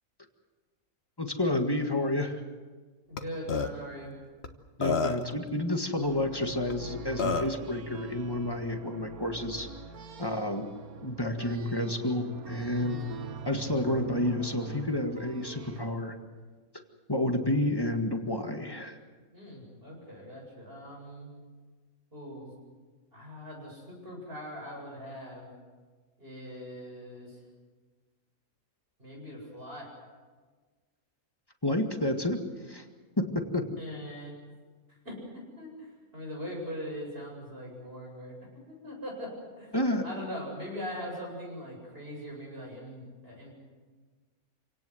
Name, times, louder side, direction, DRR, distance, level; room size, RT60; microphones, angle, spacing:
voice 1, 1.2-2.4 4.8-9.7 10.2-10.7 11.0-13.0 13.4-16.2 17.1-19.0 31.6-32.4 32.7-32.8 33.2-33.7 39.7-40.0, left 1 dB, 15° left, 4 dB, 1.8 m, -30 dB
voice 2, 3.1-4.1 12.7-13.0 19.3-21.3 22.1-22.5 23.1-25.5 26.2-27.4 29.0-29.9 33.8-34.3 35.0-38.3 38.7-39.7 40.0-43.5, equal, 40° right, 0 dB, 8.2 m, -41 dB
Burping eructation, 3.2-3.3 3.5-3.7 4.4-4.5 4.8-5.3 6.7-6.8 7.2-7.6, left 4 dB, 50° left, 1.4 m, -28 dB
sound 1, 6.0-15.8, right 5 dB, 80° right, 1.6 m, -43 dB
27.5 x 18.0 x 7.9 m, 1.4 s
omnidirectional pair, 1.5 m